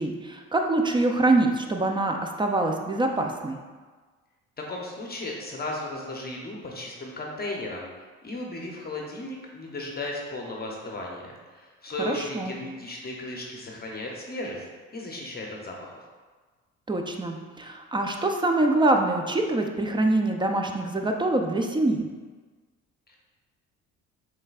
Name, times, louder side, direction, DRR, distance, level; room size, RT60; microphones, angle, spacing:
voice 1, 0.0-3.6 12.1-12.6 16.9-22.1, right 2 dB, 15° right, 3 dB, 0.4 m, -25 dB
voice 2, 4.6-7.9 8.2-14.6 14.9-15.9, left 2 dB, 30° left, -1 dB, 0.8 m, -35 dB
5.2 x 3.3 x 2.4 m, 1.4 s
supercardioid pair, 75°, 33 cm